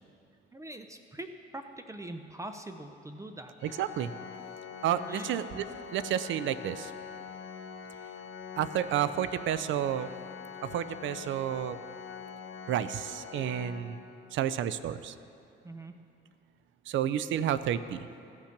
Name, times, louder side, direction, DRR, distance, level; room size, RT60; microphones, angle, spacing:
voice 1, 0.5-3.5 5.1-5.3 8.2-8.3 15.6-15.9, right 1 dB, 15° right, 7 dB, 0.5 m, -43 dB
Organ, 3.6-14.5, left 6 dB, 85° left, 0.7 m, -44 dB
voice 2, 3.6-4.1 4.8-5.6 5.9-6.9 8.6-10.1 10.6-11.8 12.7-14.0 14.3-15.1 16.9-18.1, right 10 dB, 75° right, 14 dB, 0.5 m, -31 dB
15.0 x 5.9 x 5.8 m, 2.7 s
cardioid pair, 90°, 20 cm